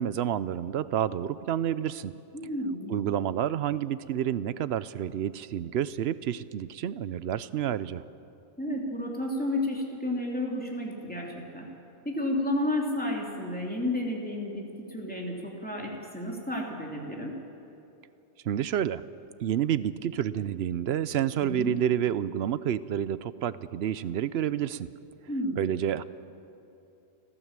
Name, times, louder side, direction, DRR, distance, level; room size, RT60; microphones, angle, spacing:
voice 1, 0.0-2.1 2.9-8.0 18.4-19.0 19.4-24.9 25.6-26.0, right 10 dB, 70° right, 16 dB, 0.8 m, -29 dB
voice 2, 2.3-3.1 8.6-11.7 12.0-17.3 21.4-21.7 25.3-25.6, left 1 dB, 5° left, -1 dB, 3.0 m, -32 dB
30.0 x 12.5 x 7.5 m, 2.9 s
omnidirectional pair, 1.2 m